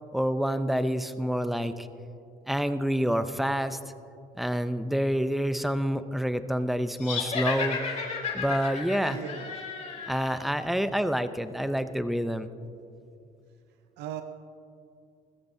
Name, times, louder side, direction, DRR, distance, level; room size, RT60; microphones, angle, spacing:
voice 1, 0.0-1.9 2.5-3.8 4.3-8.0 8.3-9.2 10.1-12.5, equal, ahead, 10 dB, 0.6 m, -28 dB
sound 1, 7.0-10.4, left 5 dB, 45° left, 3.4 m, -33 dB
voice 2, 9.0-9.5 14.0-14.2, right 10 dB, 85° right, 8 dB, 0.6 m, -37 dB
21.0 x 14.5 x 2.7 m, 2.6 s
cardioid pair, 110°, 17 cm